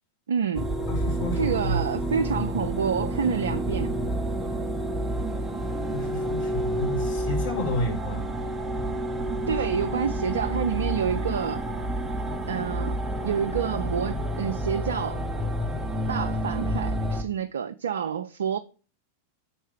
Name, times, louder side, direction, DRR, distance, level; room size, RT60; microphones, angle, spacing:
voice 1, 0.3-0.7 1.4-3.9 9.5-11.6 12.5-15.2 16.1-18.6, right 7 dB, 65° right, 0.3 m, -28 dB
sound 1, 0.5-17.2, right 1 dB, 10° right, 0.8 m, -29 dB
voice 2, 0.9-1.8 5.9-8.2, equal, 60° left, 3.4 m, -30 dB
5.5 x 4.5 x 4.8 m
figure-of-eight pair, 90°, 0 cm